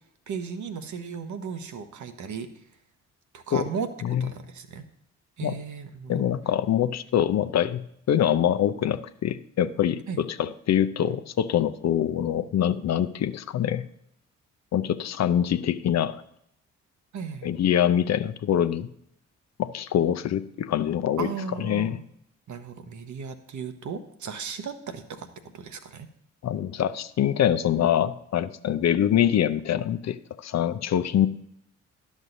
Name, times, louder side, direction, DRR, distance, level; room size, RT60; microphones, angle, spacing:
voice 1, 0.3-2.5 3.3-4.8 5.4-6.2 10.1-10.2 17.1-17.6 21.2-22.1 22.5-25.3 25.5-26.1, right 6 dB, 50° right, 9 dB, 1.0 m, -36 dB
voice 2, 6.1-13.9 14.7-16.2 17.4-18.9 19.6-21.3 21.6-22.0 26.4-31.3, left 10 dB, 45° left, 11 dB, 0.6 m, -24 dB
12.0 x 6.2 x 2.6 m, 0.74 s
hypercardioid pair, 40°, 37 cm